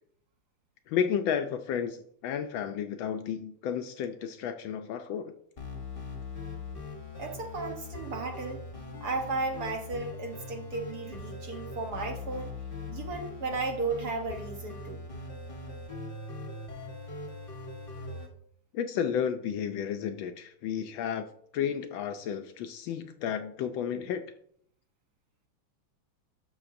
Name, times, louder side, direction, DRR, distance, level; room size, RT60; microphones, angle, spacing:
voice 1, 0.9-5.3 18.7-21.3 21.5-24.2, left 8 dB, 75° left, 8 dB, 1.2 m, -32 dB
sound 1, 5.6-18.3, left 3 dB, 35° left, 1.0 m, -41 dB
voice 2, 7.2-8.6 9.0-12.5 12.9-15.0, right 3 dB, 55° right, 2 dB, 1.3 m, -34 dB
12.5 x 5.8 x 2.6 m, 0.66 s
omnidirectional pair, 2.4 m